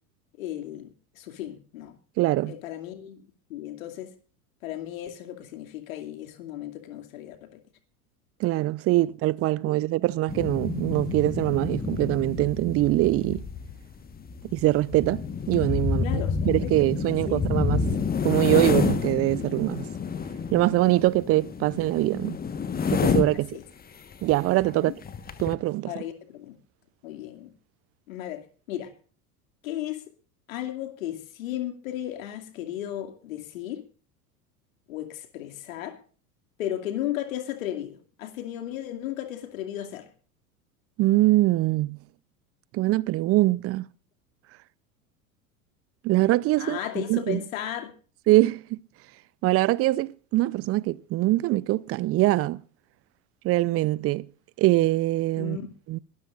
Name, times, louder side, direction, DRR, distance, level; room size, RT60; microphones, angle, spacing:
voice 1, 0.4-0.9 1.1-1.9 2.5-3.2 3.5-4.1 4.6-7.6 9.7-9.8 16.0-16.9 17.3-17.4 23.5-23.6 24.7-24.9 25.8-26.6 27.0-27.5 28.1-28.9 29.6-30.0 30.5-33.8 34.9-36.0 36.6-40.1 46.6-47.9 55.4-55.7, left 12 dB, 65° left, 2.6 m, -35 dB
voice 2, 2.2-2.5 8.4-13.4 14.5-17.9 18.2-19.9 20.5-22.4 22.9-23.6 24.2-24.9 25.4-26.0 41.0-42.0 42.7-43.9 46.0-47.4 48.3-48.8 49.4-52.6 53.4-54.3 54.6-55.6 55.9-56.0, right 17 dB, 30° right, 0.6 m, -23 dB
sound 1, 10.3-23.5 24.1-24.3 24.6-24.7 25.0-25.6, left 6 dB, 20° left, 1.4 m, -29 dB
22.5 x 13.5 x 2.5 m
figure-of-eight pair, 80°, 44 cm